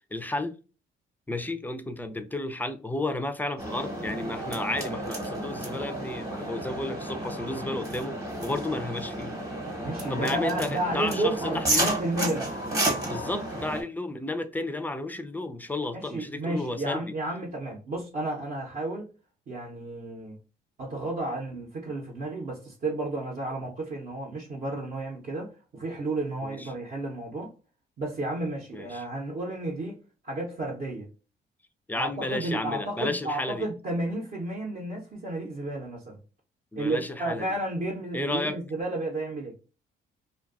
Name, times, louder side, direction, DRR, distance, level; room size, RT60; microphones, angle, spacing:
voice 1, 0.1-0.6 1.3-9.4 10.1-11.9 13.1-17.1 26.4-26.7 28.7-29.1 31.9-33.7 36.7-37.5 38.1-38.6, left 2 dB, 10° left, 0.3 m, -32 dB
sound 1, 3.6-13.8, right 1 dB, 15° right, 0.9 m, -32 dB
voice 2, 9.8-12.5 15.9-19.1 19.5-20.4 20.8-27.5 28.0-30.0 30.2-31.1 32.0-36.2 36.7-39.6, right 2 dB, 50° right, 0.7 m, -32 dB
2.5 x 2.2 x 2.3 m
cardioid pair, 90°, 20 cm